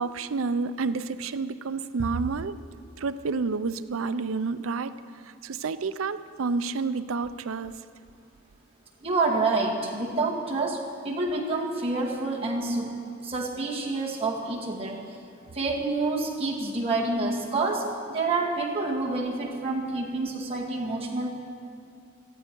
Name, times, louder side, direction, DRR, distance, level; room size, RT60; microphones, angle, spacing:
voice 1, 0.0-2.6 3.0-7.8, right 4 dB, 85° right, 0.5 m, -29 dB
voice 2, 9.0-13.0 13.2-15.2 15.5-21.3, right 3 dB, 30° right, 1.8 m, -28 dB
17.5 x 13.5 x 4.6 m
head